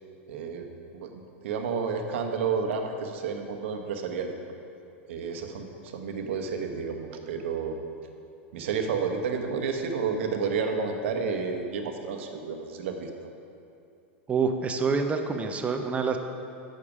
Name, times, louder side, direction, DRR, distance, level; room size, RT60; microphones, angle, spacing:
voice 1, 0.3-0.7 0.9-4.3 5.1-7.8 8.5-13.1, right 5 dB, 70° right, 4 dB, 1.0 m, -31 dB
voice 2, 14.3-16.2, right 5 dB, 20° right, 5 dB, 0.6 m, -27 dB
8.6 x 6.5 x 5.0 m, 2.6 s
hypercardioid pair, 120°, 7 cm